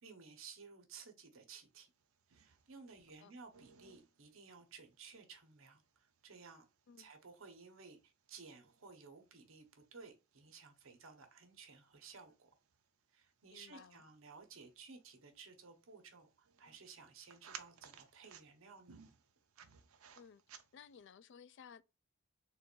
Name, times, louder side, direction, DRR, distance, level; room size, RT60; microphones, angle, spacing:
voice 1, 0.0-1.9 2.3-6.7 7.0-12.5 13.1-19.0, right 5 dB, 70° right, 1.1 m, -56 dB
sound 1, 1.7-21.1, right 7 dB, 85° right, 0.6 m, -62 dB
voice 2, 13.5-14.0 20.1-20.4 20.7-21.8, left 7 dB, 55° left, 0.3 m, -57 dB
3.8 x 2.5 x 4.4 m
head